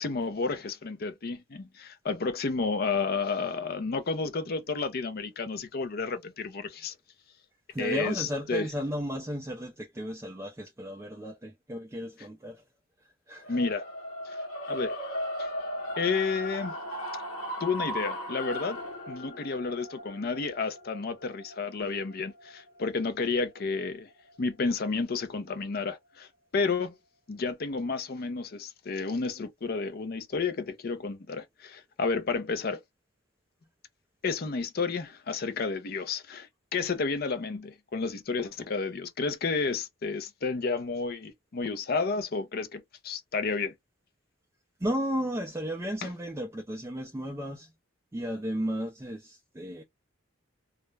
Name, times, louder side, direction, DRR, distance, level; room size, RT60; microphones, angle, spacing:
voice 1, 0.0-6.9 7.8-8.7 13.5-13.8 14.3-14.4 14.7-15.0 15.4-15.5 16.0-16.7 17.6-18.8 19.1-24.1 24.4-26.9 27.3-32.8 34.2-43.7 46.0-46.1, left 4 dB, 45° left, 0.5 m, -31 dB
voice 2, 7.7-12.6 13.3-13.6 44.8-47.7 48.1-49.8, equal, 15° right, 0.3 m, -34 dB
sound 1, 13.4-23.6, equal, 90° left, 1.0 m, -37 dB
2.3 x 2.0 x 3.1 m
head